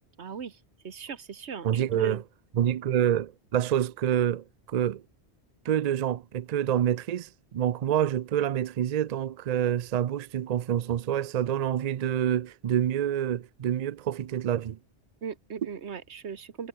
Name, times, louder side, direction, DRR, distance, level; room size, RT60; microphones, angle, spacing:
voice 1, 0.2-0.6 0.8-2.2 15.2-16.7, right 6 dB, 75° right, 1.5 m, -38 dB
voice 2, 1.6-2.2 2.5-5.0 5.6-14.8, right 10 dB, 55° right, 0.4 m, -27 dB
omnidirectional pair, 1.1 m